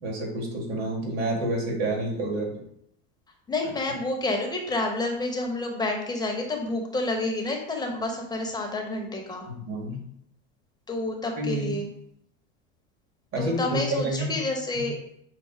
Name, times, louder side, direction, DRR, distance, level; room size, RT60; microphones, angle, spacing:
voice 1, 0.0-2.6 9.6-10.0 11.4-11.8 13.3-14.4 14.7-14.9, right 1 dB, 50° right, -1 dB, 1.9 m, -29 dB
voice 2, 3.5-9.5 10.9-11.9 13.4-15.0, left 2 dB, 10° left, 1 dB, 0.8 m, -29 dB
5.7 x 2.1 x 4.3 m, 0.72 s
supercardioid pair, 125°, 34 cm